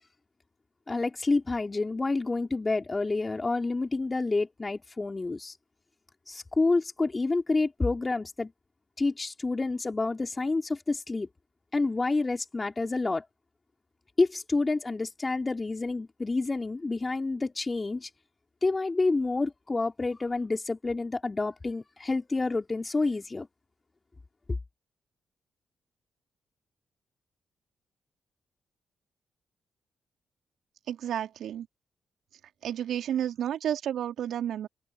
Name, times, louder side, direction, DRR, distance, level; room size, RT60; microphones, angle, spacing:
voice 1, 0.9-5.5 6.3-8.5 9.0-11.3 11.7-13.2 14.2-18.1 18.6-23.5, left 3 dB, 30° left, 4.2 m, -28 dB
voice 2, 30.9-31.7 32.6-34.7, right 10 dB, 70° right, 3.5 m, -31 dB
hypercardioid pair, 40°, 0 cm